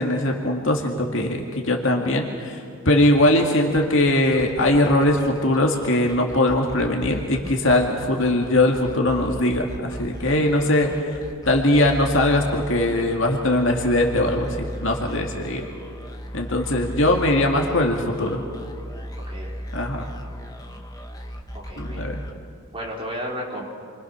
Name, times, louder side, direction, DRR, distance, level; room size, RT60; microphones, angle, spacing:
voice 1, 0.0-10.9 11.5-15.6 16.3-18.4 19.7-20.1 21.8-22.2, left 1 dB, 60° left, 1 dB, 2.2 m, -21 dB
sound 1, 3.2-22.9, equal, 15° left, 1.5 m, -37 dB
voice 2, 21.5-22.1 22.7-23.6, equal, 25° right, -4 dB, 4.7 m, -33 dB
29.0 x 24.0 x 6.1 m, 2.3 s
head